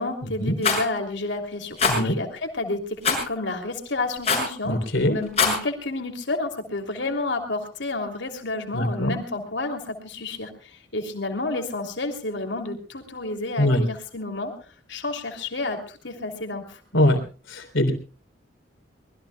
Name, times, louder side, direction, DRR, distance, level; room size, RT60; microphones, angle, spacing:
voice 1, 0.0-4.7 5.1-16.8, left 2 dB, 65° left, 4 dB, 3.1 m, -30 dB
Rattle, 0.6-0.8 1.8-2.0 3.0-3.3 4.2-4.5 5.2-5.6, left 4 dB, 35° left, 6.6 m, -21 dB
voice 2, 4.6-5.1 8.7-9.1 13.6-13.8 16.9-17.2 17.5-17.9, left 1 dB, 90° left, 6 dB, 3.5 m, -22 dB
25.0 x 20.5 x 2.3 m, 0.36 s
head